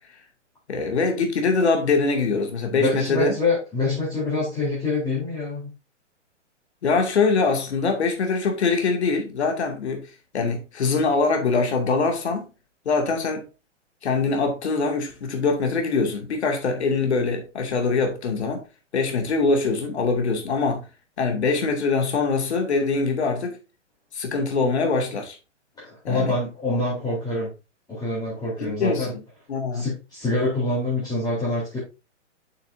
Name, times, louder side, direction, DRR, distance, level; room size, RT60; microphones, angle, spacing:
voice 1, 0.7-3.4 6.8-10.0 10.3-12.5 12.9-13.4 14.0-18.6 18.9-20.8 21.2-23.6 24.1-25.4 26.0-26.3 28.6-29.1 29.5-29.8, left 4 dB, 60° left, 2.5 m, -23 dB
voice 2, 2.7-5.7 25.8-27.5 27.9-29.1 29.7-31.8, left 2 dB, 10° left, 3.7 m, -26 dB
8.2 x 6.7 x 2.7 m
figure-of-eight pair, 120°, 37 cm